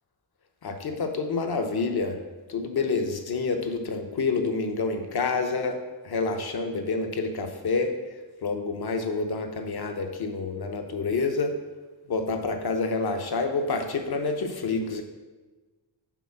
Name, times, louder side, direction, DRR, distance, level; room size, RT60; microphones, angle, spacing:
voice 1, 0.6-2.2 2.5-5.8 6.0-7.9 8.4-11.5 12.1-15.0, left 4 dB, 50° left, 5 dB, 0.8 m, -28 dB
6.1 x 3.9 x 5.7 m, 1.2 s
wide cardioid pair, 105°, 48 cm